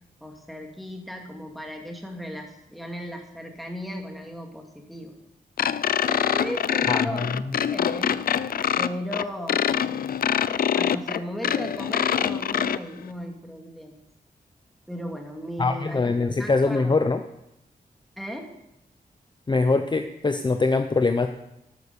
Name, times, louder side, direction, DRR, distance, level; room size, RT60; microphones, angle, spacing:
voice 1, 0.2-5.1 6.0-7.4 7.7-8.2 8.8-10.4 10.7-14.0 14.9-17.0 18.2-18.5, equal, ahead, 2 dB, 2.4 m, -36 dB
sound 1, 5.6-12.8, left 8 dB, 70° left, 0.4 m, -24 dB
voice 2, 6.9-7.4 15.6-17.2 19.5-21.3, left 3 dB, 30° left, 7 dB, 0.7 m, -23 dB
12.0 x 9.2 x 7.0 m, 0.85 s
wide cardioid pair, 110°, 15 cm